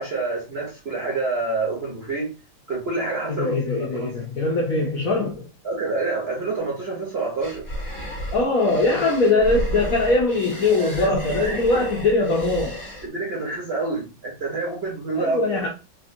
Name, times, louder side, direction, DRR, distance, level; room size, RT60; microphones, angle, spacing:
voice 1, 0.0-2.3 2.7-3.6 3.9-4.1 5.6-7.7 10.7-11.8 13.0-15.4, right 3 dB, 45° right, 0.8 m, -28 dB
voice 2, 3.3-5.5 8.3-12.8 15.2-15.7, left 2 dB, 70° left, 0.8 m, -21 dB
sound 1, 7.4-13.1, right 1 dB, 35° left, 1.0 m, -33 dB
3.4 x 2.4 x 2.6 m
omnidirectional pair, 2.0 m